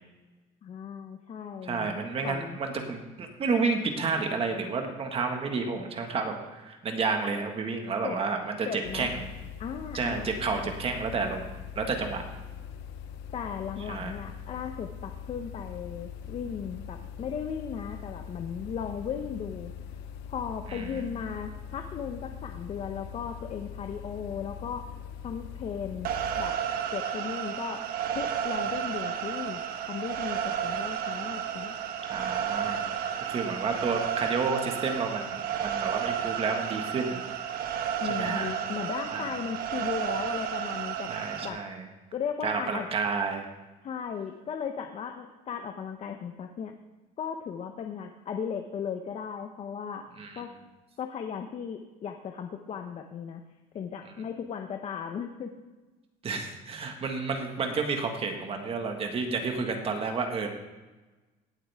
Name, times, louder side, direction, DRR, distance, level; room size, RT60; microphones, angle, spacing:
voice 1, 0.6-2.0 2.2-2.6 8.0-8.2 8.7-9.1 9.6-10.7 13.3-19.7 20.3-24.9 25.2-26.1 26.4-26.6 26.9-27.8 28.1-31.8 38.0-41.1 41.4-41.6 42.1-42.9 43.8-46.7 47.2-50.1 50.4-50.5 51.0-53.4 53.7-55.5, left 7 dB, 40° left, 5 dB, 0.8 m, -36 dB
voice 2, 1.6-9.3 9.9-11.5 11.8-12.2 13.9-14.1 20.7-21.0 32.1-37.6 38.0-38.5 39.1-39.3 41.1-41.9 42.4-43.5 50.2-50.5 56.2-60.5, right 4 dB, 35° right, 4 dB, 1.7 m, -31 dB
sound 1, 8.8-26.5, left 8 dB, 80° left, 0.9 m, -42 dB
sound 2, 26.0-41.5, right 9 dB, 60° right, 1.1 m, -32 dB
17.5 x 7.8 x 3.6 m, 1.2 s
cardioid pair, 135°, 17 cm